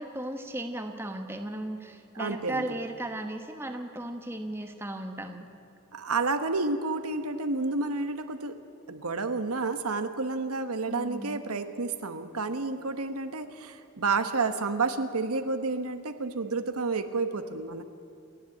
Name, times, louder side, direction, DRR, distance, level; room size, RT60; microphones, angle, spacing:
voice 1, 0.0-5.5 10.9-11.4, right 1 dB, 10° right, 5 dB, 1.2 m, -36 dB
voice 2, 2.1-2.8 5.9-8.6 8.9-17.8, right 3 dB, 90° right, 8 dB, 1.2 m, -30 dB
29.0 x 10.5 x 8.6 m, 2.6 s
head